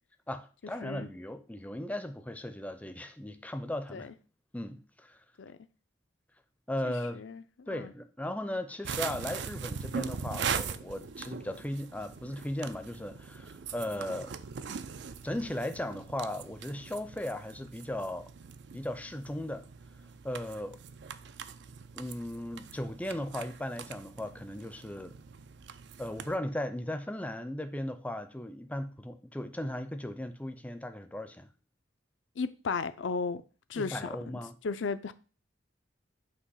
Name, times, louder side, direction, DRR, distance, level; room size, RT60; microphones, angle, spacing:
voice 1, 0.3-4.1 4.5-5.2 6.7-7.2 7.7-14.3 15.2-18.3 18.7-19.7 20.2-20.8 21.9-25.1 26.0-31.5 33.7-34.5, left 1 dB, 10° left, 0.5 m, -37 dB
voice 2, 6.8-7.9 32.4-33.4 33.7-34.1 34.6-35.1, left 4 dB, 70° left, 0.5 m, -35 dB
sound 1, 8.8-26.4, right 6 dB, 60° right, 0.4 m, -41 dB
8.5 x 3.0 x 5.6 m
head